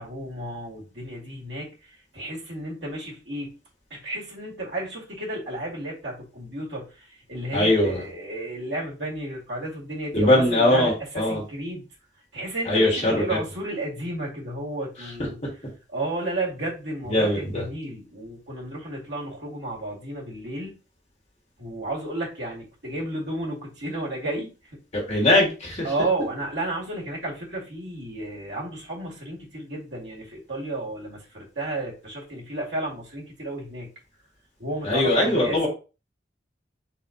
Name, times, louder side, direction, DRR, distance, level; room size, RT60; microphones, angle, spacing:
voice 1, 0.0-3.5 3.9-11.9 12.3-15.4 15.9-20.8 21.6-24.5 25.1-25.3 25.8-33.9 34.6-35.6, right 1 dB, 70° right, -3 dB, 2.2 m, -32 dB
voice 2, 7.5-8.0 10.1-11.4 12.7-13.4 17.1-17.6 24.9-25.9 34.8-35.7, left 1 dB, 40° left, -3 dB, 1.9 m, -21 dB
4.1 x 3.2 x 4.0 m, 0.33 s
head